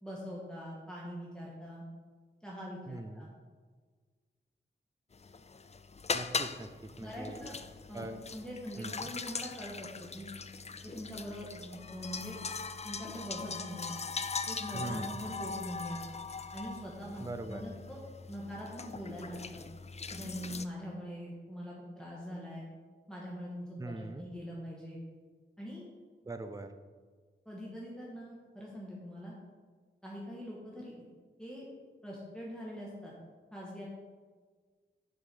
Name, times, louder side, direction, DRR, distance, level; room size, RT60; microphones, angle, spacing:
voice 1, 0.0-1.8 2.4-3.3 7.0-7.5 7.9-8.1 8.3-10.3 10.8-12.4 12.8-13.9 14.5-16.0 16.5-18.0 18.3-19.6 20.1-22.7 23.1-25.0 25.6-25.9 27.5-29.3 30.0-31.0 31.4-31.6 32.0-33.1 33.5-33.8, equal, 5° left, -6 dB, 1.6 m, -43 dB
voice 2, 2.9-3.3 6.1-7.4 7.9-8.2 8.8-9.1 14.7-15.2 17.2-17.6 23.8-24.3 26.2-26.7, right 2 dB, 15° right, 9 dB, 0.6 m, -42 dB
sound 1, 5.1-20.7, left 4 dB, 35° left, 0.4 m, -40 dB
7.5 x 5.4 x 6.2 m, 1.5 s
wide cardioid pair, 100°, 20 cm